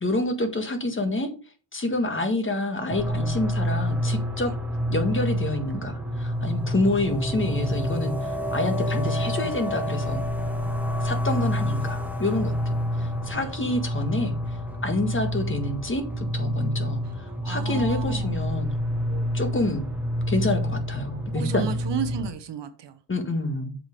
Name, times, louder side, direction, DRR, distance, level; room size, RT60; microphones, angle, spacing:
voice 1, 0.0-1.3 1.7-4.5 4.9-10.2 11.0-14.3 14.8-18.7 19.1-19.9 20.3-21.8 23.1-23.8, left 2 dB, 25° left, 6 dB, 1.5 m, -28 dB
sound 1, 2.9-22.3, equal, 5° right, 1.1 m, -28 dB
voice 2, 17.0-18.4 21.3-23.0, right 8 dB, 60° right, 10 dB, 1.1 m, -33 dB
7.7 x 5.1 x 5.0 m, 0.37 s
cardioid pair, 120°, 48 cm